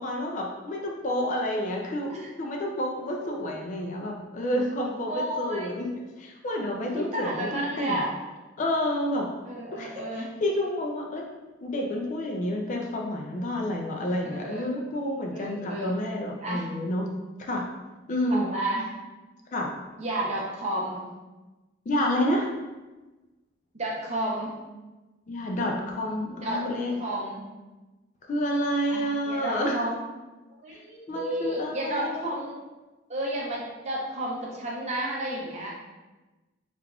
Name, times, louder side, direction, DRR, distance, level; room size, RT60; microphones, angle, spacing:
voice 1, 0.0-2.1 2.4-8.0 8.6-9.3 9.7-11.3 11.6-17.1 17.4-17.7 18.1-18.5 19.5-19.7 21.9-22.5 25.3-27.0 28.3-29.8 30.7-30.8 31.1-32.4, left 1 dB, 40° left, 0 dB, 0.3 m, -29 dB
voice 2, 5.1-5.7 6.9-8.1 9.4-10.3 14.2-14.7 15.3-15.9 16.4-16.7 18.3-18.9 20.0-21.1 23.7-24.5 26.3-26.6 27.0-27.4 28.9-30.0 30.6-32.6 33.1-35.7, right 1 dB, 35° right, -4 dB, 0.6 m, -32 dB
3.3 x 2.4 x 2.3 m, 1.1 s
head